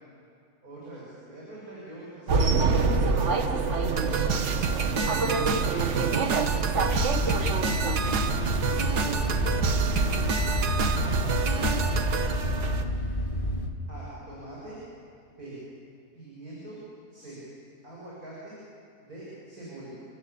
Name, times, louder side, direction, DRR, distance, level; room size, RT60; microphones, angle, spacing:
voice 1, 0.6-3.4 3.9-4.3 5.7-6.0 7.5-7.7 8.9-11.2 11.5-12.4 13.9-14.8 15.3-15.6 16.1-16.8 17.1-17.4 17.8-18.5 19.0-19.9, right 1 dB, 65° right, -7 dB, 7.6 m, -43 dB
sound 1, 2.3-12.8, right 4 dB, 50° right, 1.5 m, -27 dB
sound 2, 4.0-12.3, right 5 dB, 85° right, 2.0 m, -29 dB
sound 3, 6.8-13.7, left 1 dB, 30° left, 2.1 m, -30 dB
30.0 x 15.0 x 8.6 m, 2.4 s
omnidirectional pair, 1.7 m